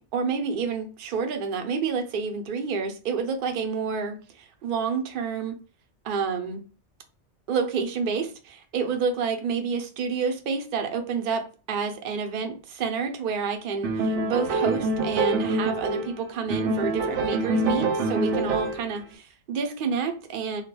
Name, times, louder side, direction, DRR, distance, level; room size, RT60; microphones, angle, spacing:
voice 1, 0.1-5.5 6.0-6.6 7.5-20.6, right 5 dB, 55° right, 0.7 m, -29 dB
sound 1, 13.8-16.2 16.5-18.9, right 2 dB, 80° right, 0.9 m, -25 dB
2.2 x 2.2 x 2.9 m
omnidirectional pair, 1.2 m